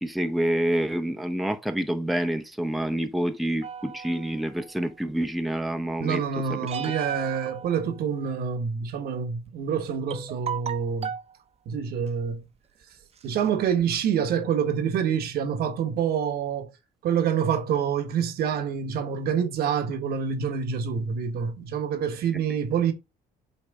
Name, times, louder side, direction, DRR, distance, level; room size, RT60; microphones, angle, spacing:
voice 1, 0.0-6.2 6.5-6.6, right 1 dB, ahead, 0.8 m, -27 dB
sound 1, 3.6-4.9 6.7-8.4 9.5-9.6 10.1-11.3 12.1-12.3 12.8-12.9 13.2-13.9, right 7 dB, 40° right, 0.9 m, -37 dB
voice 2, 6.0-11.1 11.6-12.4 13.2-16.7 17.0-22.9, right 7 dB, 70° right, 1.4 m, -27 dB
8.3 x 3.3 x 4.9 m
cardioid pair, 110°, 17 cm